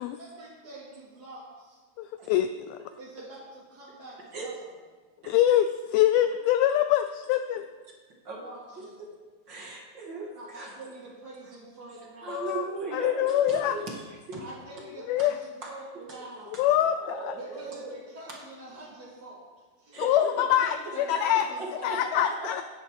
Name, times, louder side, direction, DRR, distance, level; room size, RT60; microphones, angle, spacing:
voice 1, 0.2-1.8 3.0-4.5 8.4-9.0 10.3-12.4 14.3-16.7 17.3-19.4 19.8-20.0 20.5-22.0, right 2 dB, 30° right, -8 dB, 2.3 m, -45 dB
voice 2, 2.0-2.8 5.3-7.7 12.3-12.6 12.9-13.8 15.1-15.4 16.6-17.3 20.0-21.5 21.8-22.6, left 11 dB, 85° left, 10 dB, 2.1 m, -24 dB
voice 3, 8.8-9.1 9.5-10.8 12.2-14.4 15.6-15.7 15.9-16.2 16.8-18.0 18.3-18.4 19.9-20.3 20.8-20.9 21.6-22.6, right 3 dB, 50° right, -1 dB, 1.4 m, -38 dB
15.0 x 10.5 x 4.8 m, 1.4 s
omnidirectional pair, 4.8 m